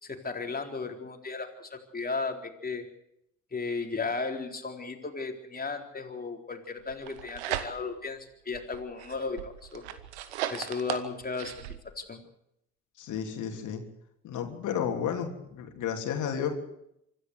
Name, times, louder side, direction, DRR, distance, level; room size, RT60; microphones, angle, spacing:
voice 1, 0.0-2.8 3.5-9.8 10.5-12.2, left 4 dB, 25° left, 4 dB, 4.0 m, -35 dB
sound 1, 6.9-8.1 8.5-11.8, right 11 dB, 85° right, 1.3 m, -37 dB
voice 2, 13.0-13.8 14.2-16.6, left 8 dB, 65° left, 4 dB, 3.2 m, -32 dB
25.5 x 13.5 x 8.1 m, 0.77 s
hypercardioid pair, 55°, 33 cm